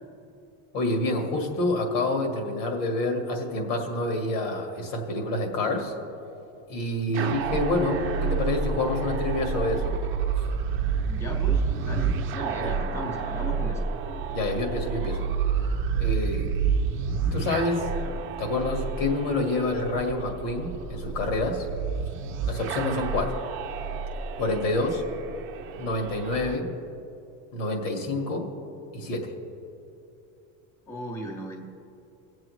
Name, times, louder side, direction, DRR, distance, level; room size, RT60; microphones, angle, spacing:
voice 1, 0.7-5.9 6.7-9.9 12.6-12.7 14.3-15.3 16.0-16.5 17.3-17.9 18.4-21.7 22.5-23.4 24.4-25.0 25.8-26.7 27.5-28.5 28.9-29.3, left 2 dB, 85° left, 3 dB, 1.9 m, -27 dB
sound 1, 7.1-26.6, right 6 dB, 35° right, 0.6 m, -29 dB
voice 2, 11.1-13.9 30.9-31.7, equal, 10° left, 1 dB, 0.4 m, -36 dB
19.5 x 7.6 x 3.1 m, 2.8 s
cardioid pair, 175°, 37 cm